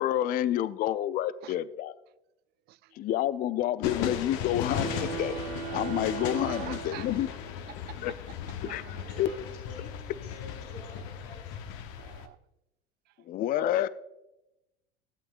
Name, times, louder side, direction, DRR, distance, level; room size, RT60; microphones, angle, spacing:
voice 1, 0.0-1.9 3.0-5.4 5.7-7.3 8.0-8.1 8.6-8.8 9.2-9.3 13.3-13.9, left 12 dB, 30° left, 17 dB, 0.4 m, -29 dB
voice 2, 2.7-3.0 6.5-7.4 7.7-8.2 8.6-9.4 12.0-12.4 13.1-13.2 13.5-13.9, right 16 dB, 35° right, 18 dB, 0.4 m, -46 dB
sound 1, 3.8-12.3, left 8 dB, 50° left, 1.0 m, -37 dB
sound 2, 4.6-7.6, right 6 dB, 65° right, 0.8 m, -37 dB
voice 3, 8.9-11.6, left 2 dB, 75° left, -7 dB, 4.0 m, -48 dB
15.0 x 8.5 x 2.5 m, 0.91 s
figure-of-eight pair, 80°, 31 cm